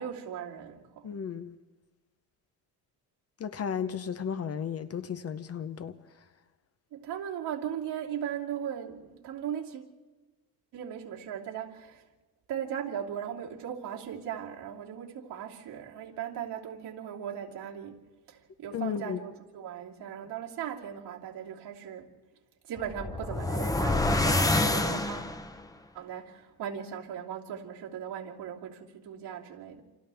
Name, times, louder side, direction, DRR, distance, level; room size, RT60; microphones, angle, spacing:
voice 1, 0.0-1.1 6.9-9.9 10.7-12.0 12.5-18.0 18.3-22.1 22.6-25.3 25.9-29.8, right 9 dB, 80° right, 3.0 m, -38 dB
voice 2, 1.0-1.6 3.4-6.0 18.7-19.2, left 7 dB, 35° left, 0.8 m, -34 dB
sound 1, 22.8-25.6, left 2 dB, 10° left, 0.8 m, -27 dB
29.0 x 26.5 x 3.5 m
cardioid pair, 145°, 40 cm